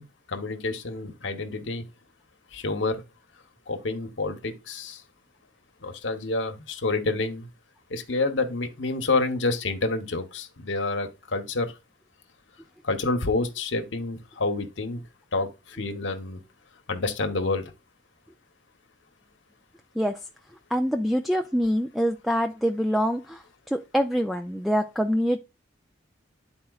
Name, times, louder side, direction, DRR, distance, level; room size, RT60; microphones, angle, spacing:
voice 1, 0.0-1.8 2.5-3.0 3.7-5.0 5.8-7.5 7.9-11.7 12.8-15.0 15.3-16.4 16.9-17.7, left 3 dB, 70° left, 0.9 m, -28 dB
voice 2, 20.7-25.4, equal, ahead, 0.3 m, -25 dB
10.5 x 4.2 x 2.3 m
head